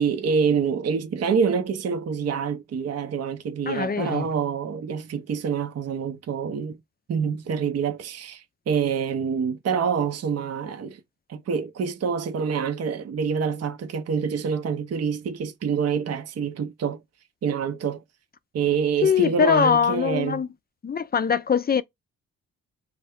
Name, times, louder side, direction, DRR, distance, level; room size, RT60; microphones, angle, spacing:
voice 1, 0.0-6.8 7.1-11.0 11.3-17.0 17.4-18.0 18.5-20.4, right 6 dB, 45° right, 0.5 m, -26 dB
voice 2, 3.7-4.3 19.0-20.5 20.8-21.8, left 7 dB, 25° left, 0.4 m, -22 dB
2.2 x 2.1 x 3.5 m
supercardioid pair, 45°, 36 cm